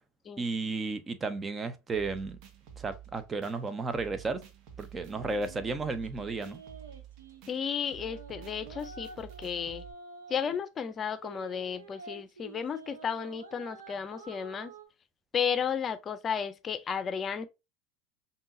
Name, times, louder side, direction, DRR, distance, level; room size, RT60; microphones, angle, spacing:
voice 1, 0.4-2.4 2.8-4.4 4.8-6.6, right 3 dB, 25° right, 0.7 m, -33 dB
sound 1, 1.9-9.9, right 10 dB, 55° right, 1.0 m, -49 dB
sound 2, 5.0-7.4 7.9-10.6 11.2-14.8, right 4 dB, 80° right, 0.7 m, -49 dB
voice 2, 7.5-9.8 10.3-14.7 15.3-17.5, left 7 dB, 35° left, 0.6 m, -33 dB
5.3 x 2.7 x 2.6 m
hypercardioid pair, 80°, 0 cm